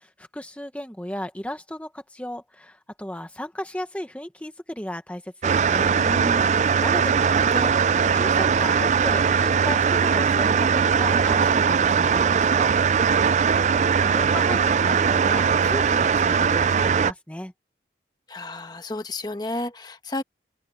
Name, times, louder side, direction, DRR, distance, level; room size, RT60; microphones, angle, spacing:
voice 1, 0.0-5.9 6.8-7.7 8.0-12.7 14.0-17.5, left 1 dB, 10° left, 1.0 m, -35 dB
sound 1, 5.4-17.1, right 6 dB, 40° right, 0.3 m, -20 dB
voice 2, 5.9-6.6 18.3-20.2, left 2 dB, 25° left, 1.2 m, -32 dB
open air
head